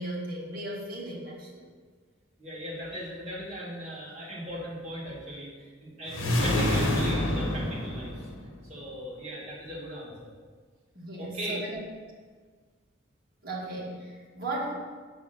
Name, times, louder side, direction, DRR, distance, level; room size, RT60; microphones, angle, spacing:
voice 1, 0.0-1.7 10.9-11.8 13.4-14.7, right 1 dB, 45° right, -4 dB, 2.1 m, -36 dB
voice 2, 2.4-8.3 8.7-10.3 11.2-11.6, equal, 30° right, -7 dB, 2.5 m, -38 dB
sound 1, 6.1-8.7, left 1 dB, 90° left, 1.3 m, -27 dB
8.1 x 4.7 x 5.9 m, 1.5 s
head